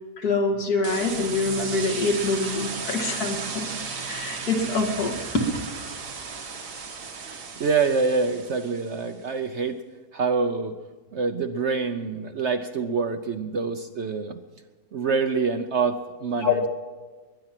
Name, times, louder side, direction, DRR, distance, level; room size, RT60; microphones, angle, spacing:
voice 1, 0.2-3.7 4.0-5.5 16.4-16.6, left 3 dB, 70° left, 3 dB, 2.3 m, -25 dB
sound 1, 0.8-9.1, right 5 dB, 80° right, 2.1 m, -35 dB
voice 2, 7.2-9.8 10.1-10.8 11.1-14.4 14.9-16.6, right 4 dB, 55° right, 8 dB, 0.8 m, -26 dB
22.0 x 10.0 x 5.9 m, 1.3 s
omnidirectional pair, 1.7 m